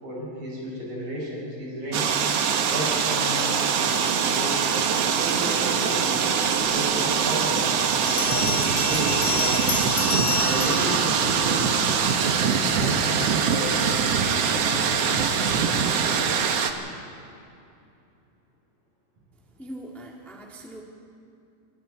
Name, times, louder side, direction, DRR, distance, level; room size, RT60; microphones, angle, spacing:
voice 1, 0.0-2.2 2.6-4.6 5.0-6.1 6.7-9.7 10.3-11.8 12.7-15.8, equal, 50° right, -5 dB, 8.1 m, -33 dB
sound 1, 1.9-16.7, right 6 dB, 75° right, 1.4 m, -23 dB
Bell, 8.1-11.9, left 6 dB, 70° left, 3.4 m, -30 dB
voice 2, 19.6-20.8, right 1 dB, ahead, -2 dB, 1.1 m, -41 dB
28.0 x 23.0 x 4.2 m, 2.6 s
omnidirectional pair, 4.5 m